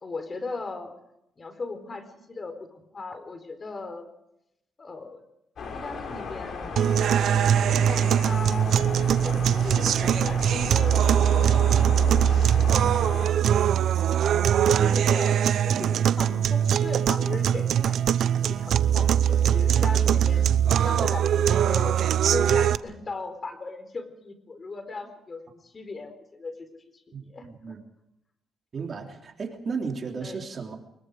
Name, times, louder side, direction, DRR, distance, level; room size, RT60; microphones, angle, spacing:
voice 1, 0.0-0.9 1.4-4.1 4.8-5.2 5.7-6.9 7.6-8.8 9.2-11.7 12.5-12.9 14.6-20.4 20.8-22.0 22.3-27.7 30.2-30.4, left 3 dB, 35° left, 9 dB, 4.1 m, -37 dB
sound 1, 5.6-13.3, left 4 dB, 60° left, 5.8 m, -35 dB
sound 2, 6.8-22.8, right 9 dB, 70° right, 0.8 m, -22 dB
voice 2, 27.1-27.8 28.7-30.8, right 5 dB, 45° right, 3 dB, 3.2 m, -34 dB
24.0 x 22.0 x 5.0 m, 0.83 s
cardioid pair, 90°, 0 cm